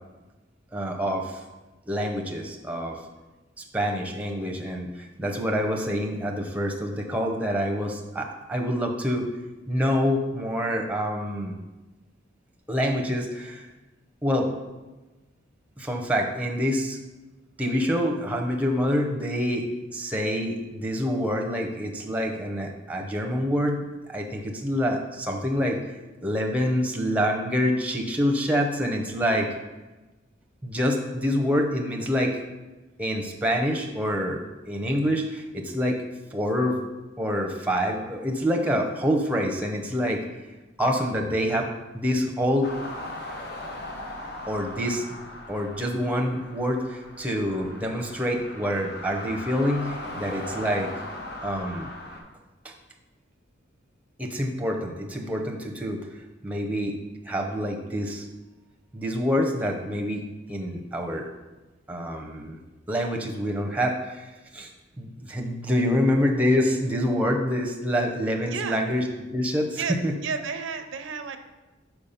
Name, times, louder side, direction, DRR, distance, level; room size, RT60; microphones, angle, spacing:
voice 1, 0.7-1.4 1.9-3.0 3.6-9.3 9.7-11.5 12.7-13.6 14.2-14.5 15.8-17.0 17.6-19.6 19.9-25.8 26.2-29.5 30.6-32.4 33.0-36.0 36.3-36.8 37.2-40.2 40.8-42.7 44.5-45.0 45.5-50.9 51.4-51.9 52.6-52.7 54.2-56.1 56.4-56.9 57.2-58.3 58.9-60.2 60.5-61.3 61.9-62.6 62.9-64.3 64.5-64.7 65.0-69.0 69.3-70.1, equal, 5° right, 2 dB, 0.6 m, -26 dB
sound 1, 42.6-52.2, left 1 dB, 55° left, 1.0 m, -39 dB
voice 2, 68.5-68.8 69.8-71.4, right 5 dB, 90° right, 8 dB, 0.5 m, -32 dB
5.2 x 4.6 x 5.6 m, 1.1 s
head